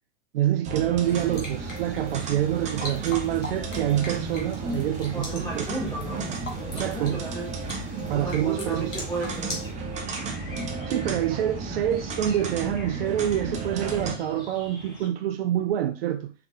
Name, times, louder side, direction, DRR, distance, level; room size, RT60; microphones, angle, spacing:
voice 1, 0.3-5.6 6.7-7.2 8.1-8.9 10.9-16.3, right 11 dB, 55° right, 0.5 m, -26 dB
sound 1, 0.6-14.1, right 3 dB, 20° right, 0.7 m, -33 dB
sound 2, 1.0-9.7, left 1 dB, 80° left, 1.7 m, -41 dB
sound 3, 3.8-15.1, left 3 dB, 55° left, 2.4 m, -47 dB
voice 2, 5.1-7.5 8.1-9.6, right 2 dB, 5° left, 1.6 m, -34 dB
4.6 x 3.6 x 2.4 m
hypercardioid pair, 105°, 36 cm